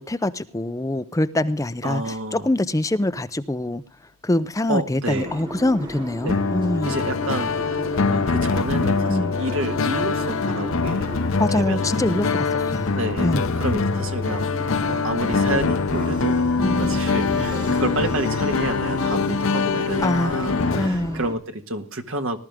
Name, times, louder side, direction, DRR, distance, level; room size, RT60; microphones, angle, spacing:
voice 1, 0.0-3.8 4.2-7.0 9.1-9.3 11.4-13.5 16.6-17.0 20.0-20.3 20.7-21.2, left 1 dB, 15° left, 11 dB, 0.6 m, -24 dB
voice 2, 1.8-2.5 4.7-5.4 6.2-6.4 6.8-11.1 11.5-12.3 13.0-13.3 13.6-16.4 16.8-22.4, right 1 dB, 60° right, 6 dB, 1.8 m, -30 dB
sound 1, 5.1-21.3, right 1 dB, 20° right, 3.0 m, -35 dB
sound 2, 6.3-20.9, left 4 dB, 65° left, 0.7 m, -23 dB
19.5 x 12.5 x 3.6 m, 0.33 s
head